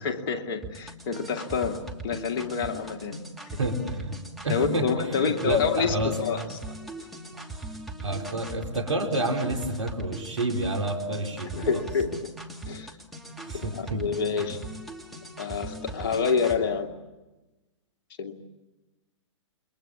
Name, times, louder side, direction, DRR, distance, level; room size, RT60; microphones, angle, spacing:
voice 1, 0.0-3.2 4.5-6.4 7.0-7.1 11.6-12.3 12.7-12.9 13.7-14.6 15.4-16.9 18.2-18.3, left 5 dB, 45° left, 4 dB, 2.4 m, -28 dB
sound 1, 0.6-16.6, right 2 dB, ahead, 2.7 m, -40 dB
voice 2, 3.6-4.2 4.4-6.5 8.0-11.8 13.5-14.0 14.4-14.5, right 1 dB, 80° right, 4 dB, 4.4 m, -29 dB
29.0 x 23.0 x 8.8 m, 1.1 s
figure-of-eight pair, 120°, 16 cm